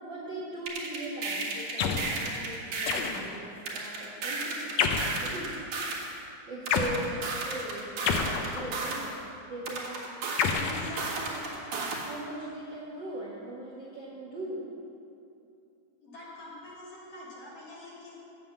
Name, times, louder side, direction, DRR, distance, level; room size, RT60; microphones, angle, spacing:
voice 1, 0.0-5.6 6.5-9.2 9.5-11.4 11.9-14.6, right 1 dB, 50° right, -6 dB, 1.5 m, -40 dB
sound 1, 0.7-3.1 3.7-6.1 6.7-9.1 9.7-12.1, right 3 dB, 75° right, 3.2 m, -34 dB
sound 2, 1.8-2.2 2.9-3.5 4.8-5.3 6.7-7.0 8.1-8.9 10.4-11.5, left 6 dB, 75° left, 1.6 m, -29 dB
voice 2, 16.0-18.2, left 1 dB, 50° left, -6 dB, 3.1 m, -46 dB
9.0 x 8.4 x 7.1 m, 2.6 s
omnidirectional pair, 3.7 m